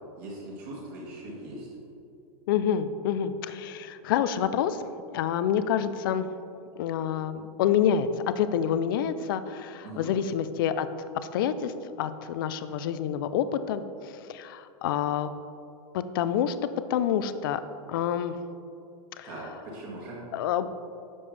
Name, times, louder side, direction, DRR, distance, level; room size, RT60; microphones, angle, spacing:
voice 1, 0.2-1.7 9.8-10.1 19.2-20.2, right 1 dB, 35° right, -5 dB, 1.8 m, -40 dB
voice 2, 2.5-4.8 5.1-6.3 6.8-8.1 8.4-10.9 11.3-11.7 12.0-13.8 14.3-15.3 16.1-16.6 16.9-17.6 17.9-18.4 19.2-19.3 20.3-20.7, left 9 dB, 35° left, 12 dB, 0.4 m, -27 dB
10.5 x 7.0 x 3.3 m, 2.6 s
supercardioid pair, 175°, 19 cm